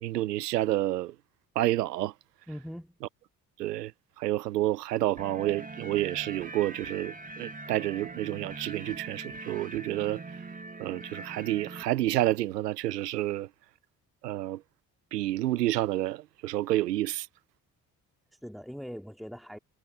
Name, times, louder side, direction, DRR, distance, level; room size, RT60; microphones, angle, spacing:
voice 1, 0.0-1.1 1.5-2.1 3.6-3.9 4.2-10.2 10.8-13.5 14.2-14.6 15.1-17.3, right 15 dB, 80° right, 0.9 m, -29 dB
voice 2, 2.5-3.0 18.3-19.6, equal, ahead, 2.5 m, -41 dB
sound 1, 5.2-11.8, right 3 dB, 15° right, 1.8 m, -42 dB
figure-of-eight pair, 45°, 47 cm